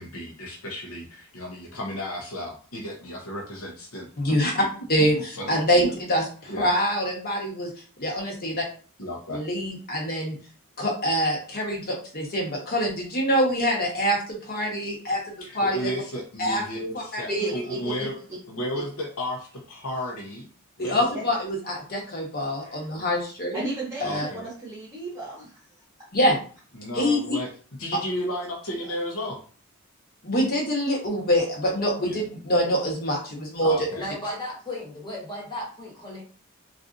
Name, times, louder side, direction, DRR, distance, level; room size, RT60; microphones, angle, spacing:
voice 1, 0.0-4.1 5.0-5.9 6.5-6.7 9.0-9.4 15.4-18.1 18.5-20.5 20.8-21.2 24.0-24.5 26.7-27.5 27.8-29.4 32.0-32.2 33.6-34.1, equal, 65° left, -2 dB, 0.8 m, -33 dB
voice 2, 4.2-4.6 4.9-7.7 8.0-8.6 9.3-10.3 10.8-15.9 16.4-16.6 17.1-17.5 20.8-23.7 24.0-24.3 26.1-26.4 26.9-27.4 30.2-33.7, equal, 45° left, -1 dB, 1.2 m, -25 dB
voice 3, 17.3-18.1 18.7-18.8 20.9-21.2 22.6-22.9 23.5-25.7 26.0-26.1 28.8-28.9, right 2 dB, 10° right, -6 dB, 1.0 m, -35 dB
voice 4, 34.0-36.2, left 1 dB, 20° left, -3 dB, 1.2 m, -35 dB
4.0 x 2.5 x 2.5 m, 0.40 s
head